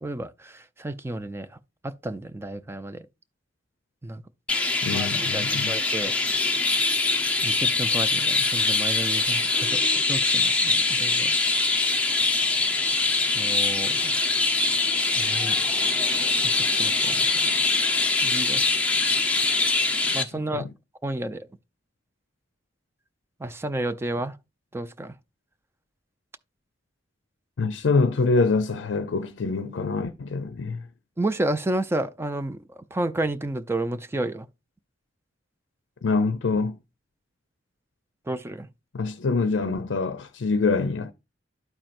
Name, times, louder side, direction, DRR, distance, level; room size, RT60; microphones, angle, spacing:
voice 1, 0.0-1.6 1.8-3.1 4.0-4.2 4.9-6.1 7.4-9.8 10.1-11.4 13.3-14.2 15.2-15.6 15.9-16.0 16.5-17.5 18.2-18.6 20.1-20.7 21.0-21.5 23.4-24.4 24.7-25.1 31.2-34.5 38.3-38.7, right 1 dB, 15° right, 0.4 m, -31 dB
Chirp tweet, 4.5-20.2, left 3 dB, 5° left, 0.8 m, -23 dB
voice 2, 4.8-5.8 20.5-20.7 27.6-30.8 36.0-36.8 38.9-41.1, left 4 dB, 70° left, 0.5 m, -25 dB
12.5 x 4.4 x 2.5 m
head